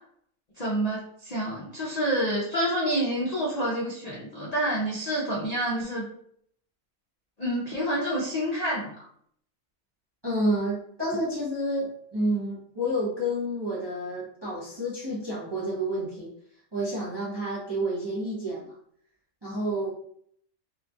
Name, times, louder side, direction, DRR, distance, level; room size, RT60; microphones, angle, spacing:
voice 1, 0.6-6.1 7.4-9.0, right 1 dB, 55° left, -5 dB, 0.4 m, -28 dB
voice 2, 10.2-16.3 16.7-18.7 19.4-19.9, equal, 30° right, -6 dB, 0.5 m, -29 dB
2.9 x 2.3 x 2.6 m, 0.64 s
omnidirectional pair, 1.4 m